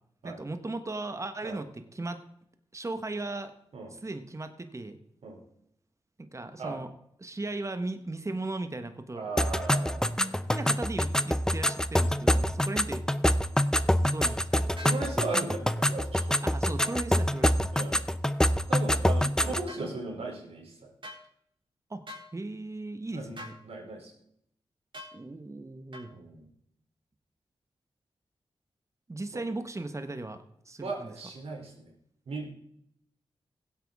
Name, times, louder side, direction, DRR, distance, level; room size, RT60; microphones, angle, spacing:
voice 1, 0.2-2.2 2.7-3.5 3.9-5.0 6.2-6.9 7.2-9.3 10.5-13.0 13.9-14.7 16.4-17.6 19.8-19.9 21.9-22.0 22.3-23.5 25.1-26.1 29.1-30.4 30.7-31.1, right 2 dB, 30° right, 9 dB, 1.3 m, -37 dB
voice 2, 9.1-10.5 14.8-16.4 17.7-18.0 18.7-20.9 23.1-24.1 26.1-26.4 29.3-29.4 30.8-31.9 32.3-32.5, right 3 dB, 75° right, 1 dB, 3.4 m, -37 dB
sound 1, 9.4-19.7, equal, 5° left, 0.6 m, -26 dB
sound 2, 14.8-15.0 19.7-19.8 21.0-21.2 22.1-22.3 23.4-23.6 24.9-25.2 25.9-26.1, left 1 dB, 55° right, 3.5 m, -43 dB
16.0 x 8.2 x 3.6 m, 0.73 s
cardioid pair, 50°, 10 cm